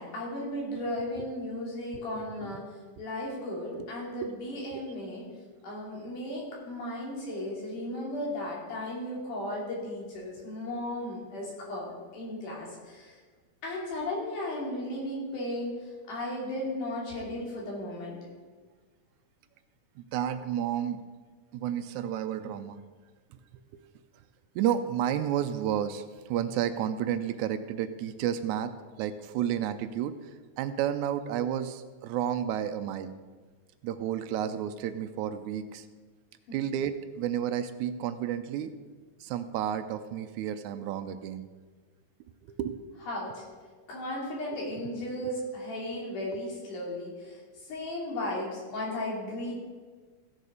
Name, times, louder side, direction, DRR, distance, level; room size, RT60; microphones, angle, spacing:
voice 1, 0.0-2.6 3.0-5.2 5.6-13.1 13.6-15.7 16.1-18.2 43.1-43.4 43.9-47.4 47.7-49.5, left 1 dB, 85° left, -3 dB, 4.3 m, -35 dB
voice 2, 20.0-21.0 21.5-22.8 23.7-23.8 24.6-28.7 29.0-30.1 30.6-33.1 33.8-35.8 36.5-38.7 39.2-41.5 42.5-42.8 44.5-44.6 45.2-45.5 46.3-46.4, right 10 dB, 80° right, 10 dB, 1.9 m, -31 dB
15.5 x 6.8 x 4.9 m, 1.4 s
omnidirectional pair, 3.5 m